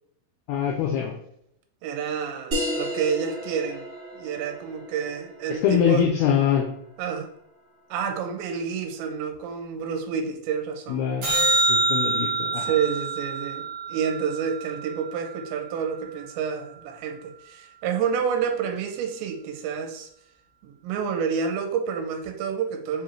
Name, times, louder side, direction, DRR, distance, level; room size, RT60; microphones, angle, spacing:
voice 1, 0.5-1.1 5.5-6.7 10.9-11.3 11.7-12.7, left 8 dB, 90° left, 1 dB, 2.2 m, -23 dB
voice 2, 1.8-3.9 4.1-6.1 7.0-7.3 7.9-11.1 12.6-20.1 20.6-23.0, right 6 dB, 90° right, 4 dB, 2.8 m, -29 dB
sound 1, 2.5-7.6, equal, 50° right, 1.0 m, -34 dB
sound 2, 11.2-15.7 22.2-22.3, right 2 dB, 70° right, 1.2 m, -26 dB
6.8 x 2.4 x 3.0 m, 0.71 s
omnidirectional pair, 5.0 m